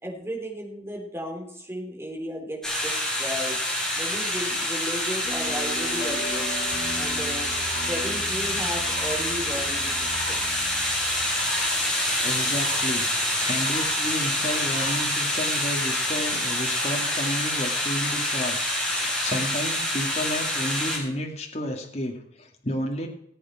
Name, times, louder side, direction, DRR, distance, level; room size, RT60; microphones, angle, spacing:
voice 1, 0.0-3.6 3.9-6.5 7.0-7.5 7.8-10.6, equal, 15° right, 0 dB, 4.0 m, -34 dB
sound 1, 2.6-21.0, left 1 dB, 5° left, 5.8 m, -26 dB
sound 2, 5.2-12.4, right 1 dB, 60° left, 7.5 m, -39 dB
sound 3, 7.5-7.9 8.6-9.2 9.9-10.5 11.1-11.8 12.4-12.9 13.4-14.0 14.6-15.1, right 3 dB, 55° right, 2.6 m, -39 dB
voice 2, 12.2-13.1 13.4-23.1, left 1 dB, 40° left, 2 dB, 2.2 m, -31 dB
18.5 x 8.5 x 6.0 m, 0.74 s
head